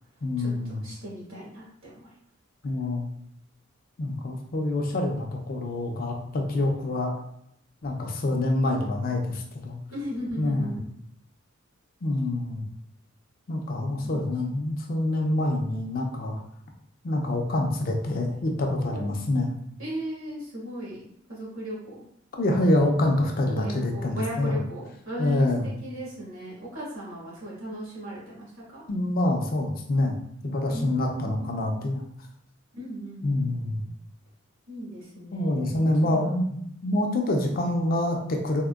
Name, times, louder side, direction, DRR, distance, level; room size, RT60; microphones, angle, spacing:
voice 1, 0.2-0.8 2.6-3.1 4.0-7.2 7.8-9.8 10.4-10.8 12.0-12.7 13.5-16.4 17.0-19.5 22.4-24.6 25.2-25.7 28.9-30.2 30.4-32.0 33.2-33.8 35.3-38.6, left 1 dB, 45° left, 2 dB, 0.4 m, -26 dB
voice 2, 0.8-2.1 9.9-10.8 14.0-14.5 18.9-19.1 19.8-22.0 23.5-28.8 30.7-31.4 32.7-33.8 34.7-36.3, equal, 85° right, -6 dB, 1.3 m, -37 dB
3.5 x 2.1 x 2.3 m, 0.72 s
head